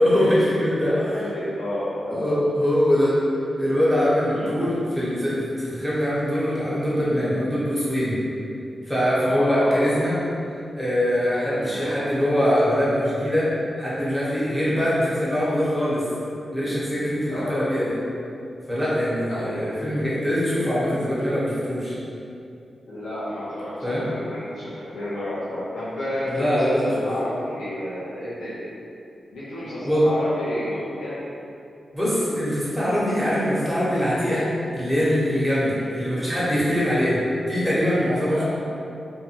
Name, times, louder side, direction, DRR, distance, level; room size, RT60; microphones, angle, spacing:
voice 1, 0.0-1.3 2.1-3.1 3.6-8.2 8.9-10.1 10.8-13.5 13.8-16.1 16.5-17.9 18.7-22.0 23.8-24.0 26.3-27.0 29.8-30.1 31.9-34.5 34.7-37.2 37.5-38.4, equal, 5° right, -9 dB, 1.1 m, -22 dB
voice 2, 0.8-2.3 4.3-4.6 9.4-9.8 11.6-11.8 14.7-14.9 17.3-17.7 19.3-19.7 22.9-28.6 29.3-31.2 38.3-38.4, left 1 dB, 85° left, -11 dB, 0.5 m, -31 dB
2.6 x 2.2 x 2.9 m, 2.6 s
cardioid pair, 45°, 0 cm